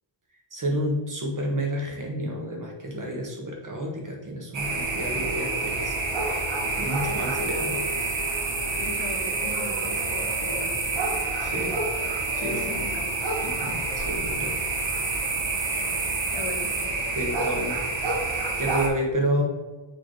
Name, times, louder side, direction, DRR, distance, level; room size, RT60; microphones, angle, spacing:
voice 1, 0.5-5.9 6.2-7.9 11.4-11.7 12.3-12.8 13.4-14.5 17.1-17.8 18.2-19.4, right 1 dB, 40° right, 0 dB, 1.6 m, -30 dB
sound 1, 4.5-18.9, right 3 dB, 65° right, 1.4 m, -28 dB
voice 2, 8.8-11.1 11.5-11.7 12.4-13.1 16.3-16.7, left 3 dB, 65° left, 2 dB, 1.2 m, -38 dB
6.6 x 3.7 x 4.9 m, 1.2 s
wide cardioid pair, 120°, 49 cm